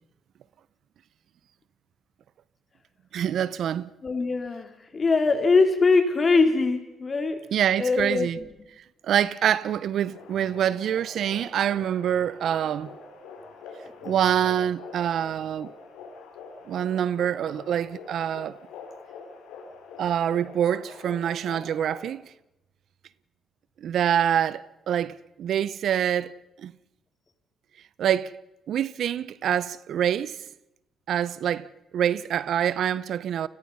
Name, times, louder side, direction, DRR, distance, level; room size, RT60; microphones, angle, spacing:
voice 1, 3.1-3.9 7.5-8.4 9.0-13.2 14.0-15.7 16.7-18.6 20.0-22.2 23.8-26.3 26.6-26.7 28.0-28.3 28.7-30.4 31.1-31.7 31.9-33.5, right 9 dB, 70° right, 0.7 m, -26 dB
voice 2, 4.0-7.4 7.8-8.5, left 4 dB, 40° left, 3.7 m, -22 dB
sound 1, 10.0-22.1, left 5 dB, 90° left, 5.0 m, -45 dB
30.0 x 20.5 x 5.6 m
supercardioid pair, 65°, 0 cm